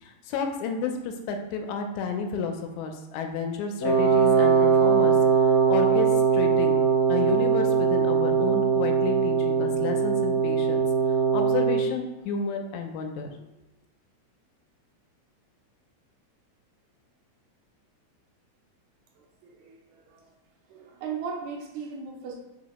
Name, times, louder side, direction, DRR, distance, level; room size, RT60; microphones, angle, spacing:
voice 1, 0.0-5.1 5.7-6.1 6.3-6.8 7.1-10.8 11.3-13.3, left 5 dB, 85° left, 4 dB, 1.9 m, -31 dB
Wind instrument woodwind instrument, 3.8-11.9, right 6 dB, 60° left, 1.5 m, -21 dB
voice 2, 19.4-20.2 20.7-22.4, right 6 dB, 85° right, -1 dB, 2.0 m, -37 dB
4.8 x 3.1 x 2.9 m, 1.0 s
omnidirectional pair, 3.3 m